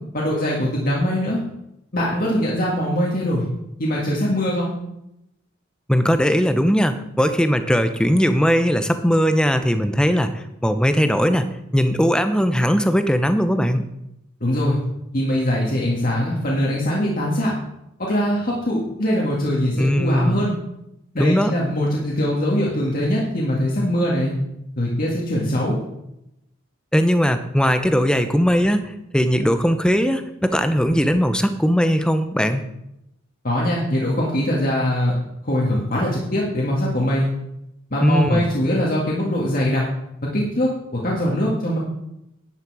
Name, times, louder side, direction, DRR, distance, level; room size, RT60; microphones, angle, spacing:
voice 1, 0.1-1.4 1.9-3.5 3.8-4.7 14.4-14.8 15.1-17.5 18.0-20.5 21.1-24.3 24.8-25.8 33.4-35.1 35.4-37.3 37.9-39.8 40.3-41.8, equal, 45° left, -4 dB, 2.0 m, -22 dB
voice 2, 5.9-13.8 19.8-20.4 21.2-21.5 26.9-32.6 38.0-38.4, equal, 5° left, 9 dB, 0.7 m, -19 dB
11.0 x 9.7 x 4.8 m, 0.84 s
head